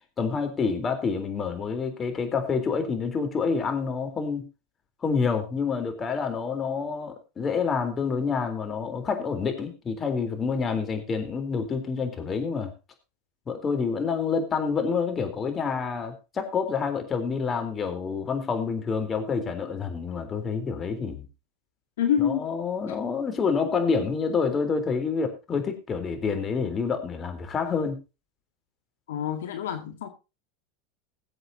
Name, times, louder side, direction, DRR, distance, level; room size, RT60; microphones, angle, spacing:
voice 1, 0.2-4.5 5.0-12.7 13.5-21.2 22.2-28.0, left 5 dB, 30° left, 6 dB, 3.7 m, -28 dB
voice 2, 22.0-22.5 29.1-30.1, left 9 dB, 80° left, 5 dB, 2.1 m, -26 dB
21.0 x 7.8 x 2.8 m, 0.29 s
hypercardioid pair, 95°, 0 cm